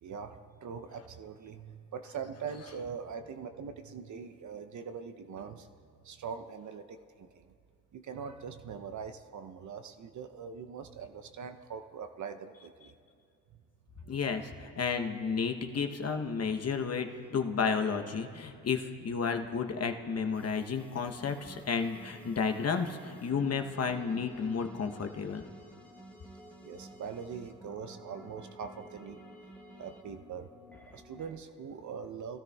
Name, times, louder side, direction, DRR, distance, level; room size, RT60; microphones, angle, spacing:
voice 1, 0.0-5.7 6.0-7.5 7.9-12.9 13.5-13.6 14.0-14.1 26.6-29.2 29.8-30.5 30.9-32.4, right 6 dB, 50° right, 8 dB, 0.7 m, -42 dB
voice 2, 14.1-25.4, left 5 dB, 40° left, 5 dB, 0.9 m, -32 dB
sound 1, 20.3-31.3, equal, 5° left, 1.3 m, -52 dB
19.0 x 13.0 x 2.3 m, 2.3 s
supercardioid pair, 50°, 37 cm